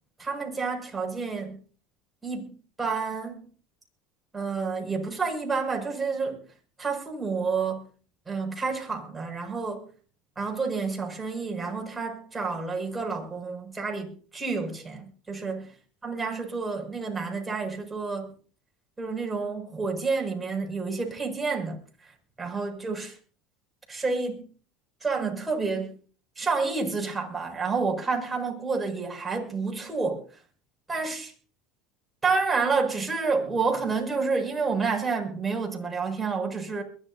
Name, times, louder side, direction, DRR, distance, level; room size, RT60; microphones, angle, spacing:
voice 1, 0.2-1.6 2.2-2.5 2.8-3.5 4.3-6.4 6.8-7.8 8.3-9.8 10.3-15.7 16.0-18.3 19.0-22.1 22.4-23.2 23.9-24.4 25.0-25.9 26.4-30.2 30.9-31.3 32.2-36.8, right 4 dB, 15° right, 6.7 m, -29 dB
22.5 x 15.5 x 2.8 m
supercardioid pair, 115°, 0 cm